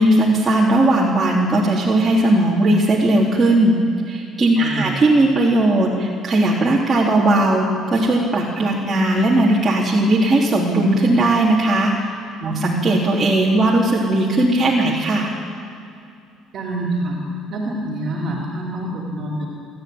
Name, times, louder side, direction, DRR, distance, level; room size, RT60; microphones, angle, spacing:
voice 1, 0.0-3.8 4.1-15.3, right 1 dB, 25° right, -4 dB, 3.2 m, -17 dB
voice 2, 4.6-5.0 12.4-12.7 16.5-17.2 17.5-19.5, right 1 dB, 50° right, -1 dB, 3.5 m, -26 dB
28.5 x 12.5 x 9.4 m, 2.5 s
cardioid pair, 125°, 0 cm